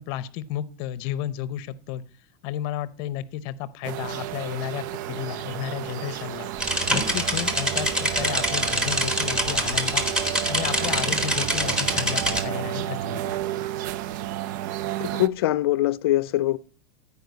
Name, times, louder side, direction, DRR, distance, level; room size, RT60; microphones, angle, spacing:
voice 1, 0.0-2.0 2.4-6.5 6.9-10.0 10.5-13.4, left 11 dB, 40° left, 0.7 m, -32 dB
sound 1, 3.8-15.3, right 13 dB, 50° right, 0.5 m, -32 dB
sound 2, 6.6-12.4, equal, 5° right, 1.2 m, -25 dB
voice 2, 15.0-16.6, left 15 dB, 75° left, 0.5 m, -23 dB
14.5 x 4.9 x 8.0 m
supercardioid pair, 175°, 13 cm